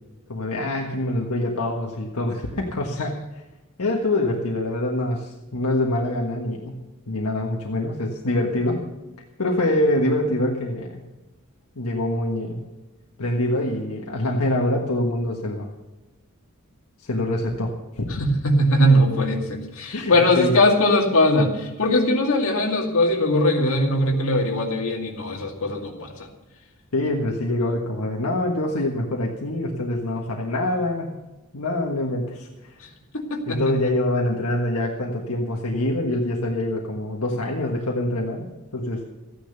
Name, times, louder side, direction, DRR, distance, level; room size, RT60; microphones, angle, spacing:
voice 1, 0.3-3.4 3.8-8.9 9.4-11.0 11.7-12.6 13.2-15.7 17.0-18.2 19.9-20.6 26.9-31.1 31.5-32.8 33.5-39.0, left 1 dB, 80° left, 0 dB, 1.5 m, -25 dB
voice 2, 18.2-26.1 33.1-33.6, left 1 dB, 65° left, 1 dB, 2.4 m, -20 dB
14.5 x 10.0 x 6.8 m, 1.1 s
head